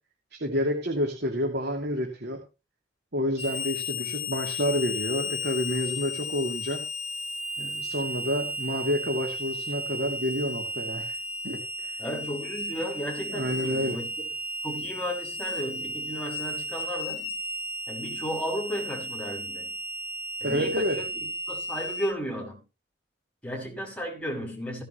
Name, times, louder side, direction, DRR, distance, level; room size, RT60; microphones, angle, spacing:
voice 1, 0.4-2.4 3.1-6.8 7.6-11.2 11.4-11.9 13.3-14.0 20.4-21.0, equal, 60° right, 2.8 m, -29 dB
Harmonica, 3.4-22.1, left 1 dB, 30° left, 5.2 m, -34 dB
voice 2, 12.0-14.1 14.6-17.3 17.9-19.8 20.4-22.6 23.4-24.8, equal, 5° left, 6.0 m, -34 dB
17.0 x 10.5 x 3.1 m
head